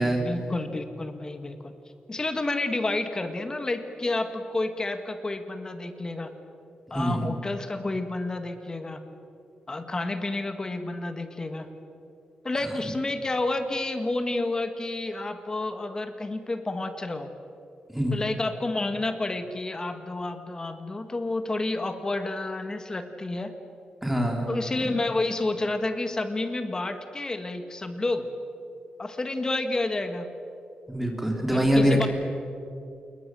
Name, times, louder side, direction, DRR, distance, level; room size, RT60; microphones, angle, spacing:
voice 1, 0.0-1.7 2.1-6.3 6.9-9.0 9.7-11.7 12.4-17.3 18.1-23.5 24.5-28.3 29.0-30.3 31.5-32.1, left 2 dB, 25° left, 8 dB, 1.8 m, -30 dB
voice 2, 6.9-7.3 17.9-18.2 24.0-24.5 30.9-32.1, equal, 5° right, 1 dB, 3.4 m, -24 dB
28.0 x 21.5 x 7.7 m, 2.7 s
wide cardioid pair, 140°, 3 cm